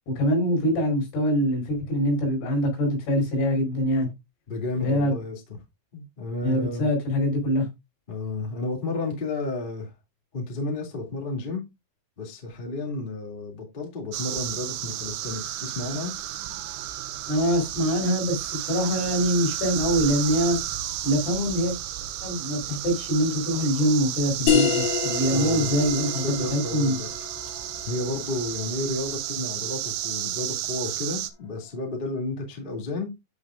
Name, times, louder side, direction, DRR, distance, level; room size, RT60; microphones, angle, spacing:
voice 1, 0.1-4.1 4.8-5.2 6.4-7.7 17.3-20.6 21.0-21.7 22.2-27.0, equal, 75° left, 7.4 m, -24 dB
voice 2, 4.5-5.6 5.9-6.9 8.1-9.9 10.3-11.6 12.2-16.1 25.3-25.7 26.2-27.1 27.8-33.1, left 2 dB, 20° left, 1.2 m, -32 dB
sound 1, 14.1-31.3, right 13 dB, 80° right, 2.3 m, -32 dB
sound 2, 24.5-29.5, left 7 dB, 45° left, 3.8 m, -28 dB
13.5 x 5.4 x 2.6 m
omnidirectional pair, 5.7 m